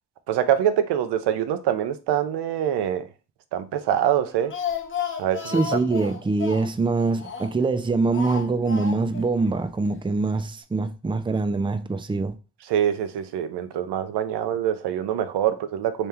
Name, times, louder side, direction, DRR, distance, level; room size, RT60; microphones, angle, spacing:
voice 1, 0.3-3.1 3.5-4.5 5.2-5.6 12.7-16.1, right 10 dB, 90° right, 0.6 m, -24 dB
Speech, 4.2-7.7 8.1-9.3 9.5-9.6 9.9-10.0, left 7 dB, 30° left, 0.8 m, -33 dB
voice 2, 5.5-12.4, right 3 dB, 15° right, 0.4 m, -24 dB
3.2 x 2.9 x 3.5 m
cardioid pair, 55°, 40 cm